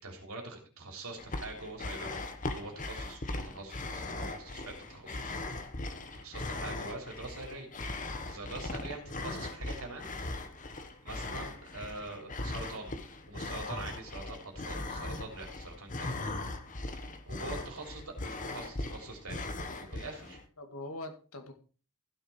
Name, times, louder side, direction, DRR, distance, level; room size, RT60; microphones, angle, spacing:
voice 1, 0.0-2.2 2.5-5.4 6.1-7.7 8.3-10.1 11.0-12.9 13.3-16.2 17.3-19.4 19.9-20.4, right 2 dB, 75° right, 2 dB, 3.5 m, -44 dB
sound 1, 1.2-20.4, left 2 dB, 35° left, 1.1 m, -39 dB
voice 2, 8.7-9.2 20.6-21.5, left 1 dB, 70° left, 6 dB, 2.1 m, -43 dB
15.0 x 6.4 x 4.6 m, 0.37 s
head